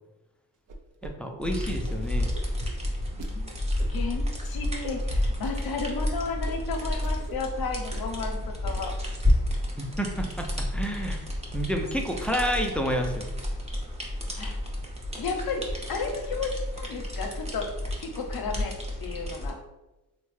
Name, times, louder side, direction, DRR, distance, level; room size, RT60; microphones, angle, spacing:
sound 1, 0.7-1.1 1.4-3.3 3.8-4.2 4.8-5.6 5.9-6.0 6.4-6.6 6.9-7.5 7.8-8.3 8.6-9.0, right 2 dB, 50° right, 0.6 m, -42 dB
voice 1, 1.0-2.3 9.8-11.2 11.5-13.3, equal, 5° left, 2 dB, 0.5 m, -29 dB
sound 2, 1.4-19.5, left 1 dB, 15° right, 0.9 m, -31 dB
voice 2, 3.1-3.5 3.9-8.9 14.4-14.5 15.2-17.7 18.0-18.7 19.0-19.6, left 4 dB, 65° left, 4 dB, 0.7 m, -33 dB
3.5 x 2.1 x 3.2 m, 1.0 s
cardioid pair, 55°, 40 cm